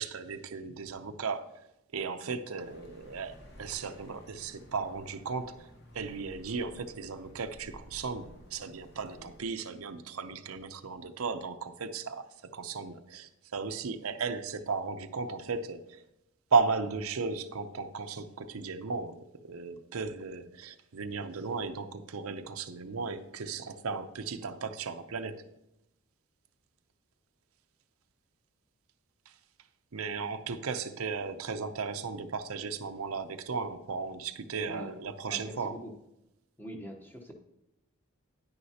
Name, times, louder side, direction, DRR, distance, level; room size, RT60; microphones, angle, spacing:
voice 1, 0.0-1.6 1.9-5.7 5.9-16.0 16.5-25.4 29.9-35.8, right 4 dB, 90° right, 8 dB, 0.7 m, -35 dB
Accelerating revving vroom, 2.5-9.4, equal, 50° left, 1.2 m, -53 dB
voice 2, 35.3-35.9 36.6-37.3, equal, 10° left, 2 dB, 0.9 m, -43 dB
10.0 x 9.5 x 2.8 m, 0.87 s
head